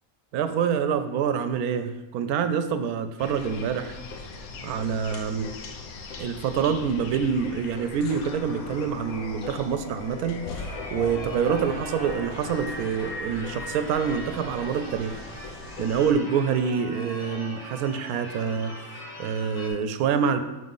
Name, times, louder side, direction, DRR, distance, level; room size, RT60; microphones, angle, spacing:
voice 1, 0.3-4.0 4.6-5.5 6.2-10.6 10.9-15.2 15.8-18.8 19.2-20.4, right 7 dB, 90° right, 10 dB, 1.1 m, -26 dB
sound 1, 3.2-16.1, left 3 dB, 75° left, 1.2 m, -39 dB
Church bell / Car / Alarm, 10.6-19.7, equal, 25° left, 1.4 m, -42 dB
5.9 x 3.8 x 5.4 m, 1.0 s
omnidirectional pair, 1.5 m